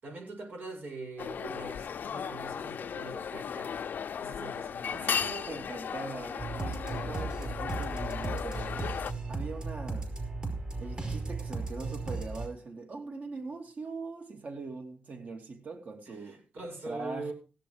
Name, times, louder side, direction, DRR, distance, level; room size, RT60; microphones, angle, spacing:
voice 1, 0.0-3.7 4.2-5.0 16.1-17.3, right 2 dB, 80° right, 7.1 m, -42 dB
sound 1, 1.2-9.1, left 7 dB, 80° left, 0.6 m, -36 dB
voice 2, 4.9-8.7 9.3-10.2 10.8-16.4 16.8-17.3, right 4 dB, 55° right, 2.9 m, -41 dB
sound 2, 6.4-12.5, right 3 dB, 30° right, 5.1 m, -36 dB
16.0 x 8.5 x 4.9 m
wide cardioid pair, 105°, 3 cm